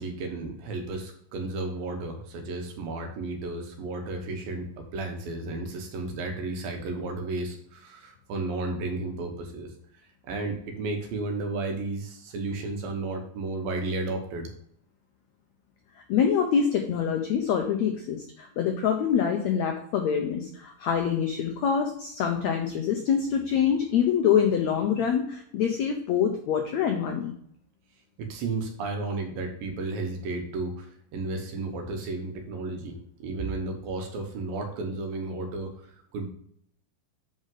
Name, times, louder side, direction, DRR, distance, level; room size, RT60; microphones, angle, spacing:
voice 1, 0.0-9.7 10.2-14.5 28.2-35.7 36.1-36.3, right 2 dB, 75° right, 4 dB, 2.9 m, -33 dB
voice 2, 16.1-27.3, left 7 dB, 85° left, 3 dB, 1.6 m, -25 dB
8.5 x 5.5 x 3.9 m, 0.67 s
omnidirectional pair, 4.2 m